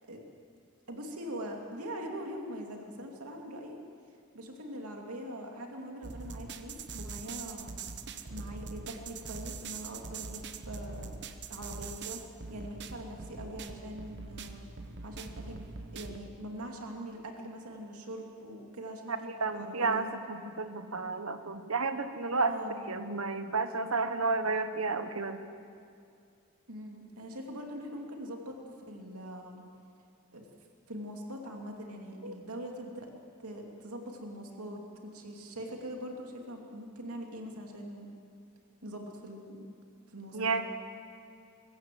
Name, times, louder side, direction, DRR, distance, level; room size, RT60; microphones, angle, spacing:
voice 1, 0.9-3.8 4.3-7.7 8.3-11.1 11.5-12.2 12.5-14.7 15.0-15.6 15.9-20.1 22.5-22.8 26.7-28.6 28.9-29.6 30.3-30.4 30.9-33.1 33.4-38.1 38.8-39.7 40.1-40.6, equal, 90° right, 1 dB, 2.7 m, -42 dB
sound 1, 6.0-16.2, right 4 dB, 50° right, 1.0 m, -43 dB
voice 2, 19.1-22.5 22.9-25.4 32.2-32.4 40.3-40.6, right 3 dB, 70° right, 9 dB, 1.3 m, -31 dB
24.5 x 15.0 x 7.7 m, 2.4 s
head